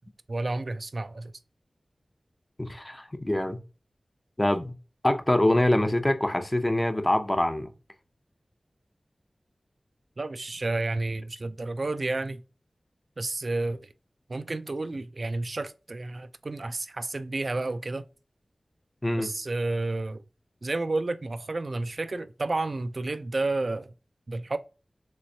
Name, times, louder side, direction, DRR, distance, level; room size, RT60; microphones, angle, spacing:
voice 1, 0.3-1.3 10.2-12.4 13.2-13.9 14.3-18.1 19.1-20.2 20.6-23.9 24.3-24.6, right 2 dB, 60° right, 0.3 m, -31 dB
voice 2, 2.6-3.6 4.4-4.7 5.0-7.7 19.0-19.3, left 1 dB, 25° left, 0.6 m, -24 dB
3.4 x 3.1 x 2.7 m
cardioid pair, 45°, 0 cm